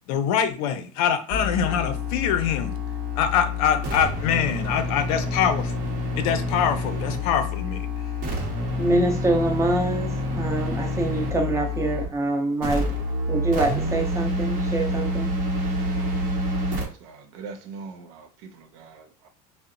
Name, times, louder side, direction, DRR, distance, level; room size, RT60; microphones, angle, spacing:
voice 1, 0.1-2.8 3.2-5.9 6.2-7.9, left 8 dB, 75° left, 0.5 m, -24 dB
sound 1, 1.3-12.2 12.6-16.9, left 2 dB, 45° right, 0.8 m, -28 dB
voice 2, 8.8-12.9 13.3-15.3, right 2 dB, 15° right, 0.6 m, -25 dB
voice 3, 16.4-19.3, right 4 dB, 70° right, 0.5 m, -42 dB
2.7 x 2.1 x 2.4 m
supercardioid pair, 115°, 19 cm